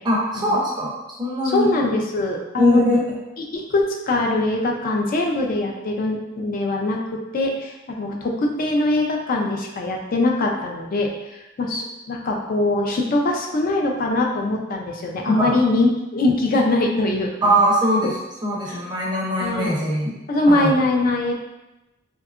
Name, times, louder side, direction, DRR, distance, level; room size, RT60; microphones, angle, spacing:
voice 1, 0.0-0.9 1.2-1.7 2.6-3.0 15.3-15.6 17.4-18.1 18.4-20.2 20.5-20.7, equal, 20° right, -4 dB, 0.5 m, -21 dB
voice 2, 1.4-2.8 3.5-17.6 18.0-18.1 18.7-18.8 19.4-19.7 20.3-21.3, left 2 dB, 45° left, 1 dB, 0.4 m, -22 dB
2.7 x 2.3 x 2.4 m, 0.98 s
head